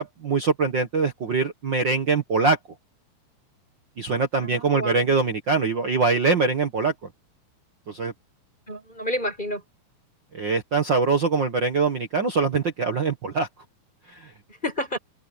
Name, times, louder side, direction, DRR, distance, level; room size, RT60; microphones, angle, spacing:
voice 1, 0.0-2.6 4.0-6.9 7.9-8.1 10.3-13.5 14.1-14.3, right 4 dB, 60° right, 1.1 m, -23 dB
voice 2, 4.4-5.1 8.7-9.6 14.6-15.0, left 1 dB, 10° left, 6.7 m, -30 dB
omnidirectional pair, 4.4 m